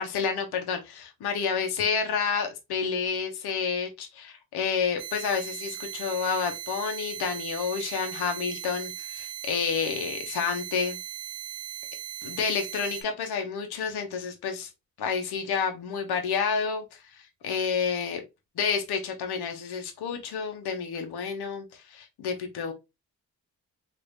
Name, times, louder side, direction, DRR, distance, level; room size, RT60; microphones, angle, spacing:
voice 1, 0.0-11.0 12.2-14.7 15.0-16.8 17.1-18.2 18.6-22.7, left 6 dB, 80° left, 4 dB, 0.8 m, -29 dB
sound 1, 5.0-13.0, right 11 dB, 80° right, 0.5 m, -38 dB
3.4 x 2.6 x 2.6 m, 0.23 s
supercardioid pair, 45°, 38 cm